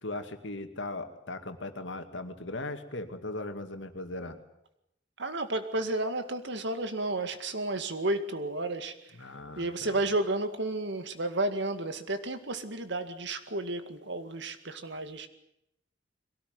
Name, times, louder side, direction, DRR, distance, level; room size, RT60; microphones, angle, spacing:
voice 1, 0.0-4.4 9.2-10.0, left 2 dB, 70° left, 7 dB, 2.3 m, -38 dB
voice 2, 5.2-9.3 9.6-15.3, right 2 dB, 65° right, 9 dB, 2.1 m, -32 dB
22.5 x 18.0 x 9.4 m, 0.81 s
head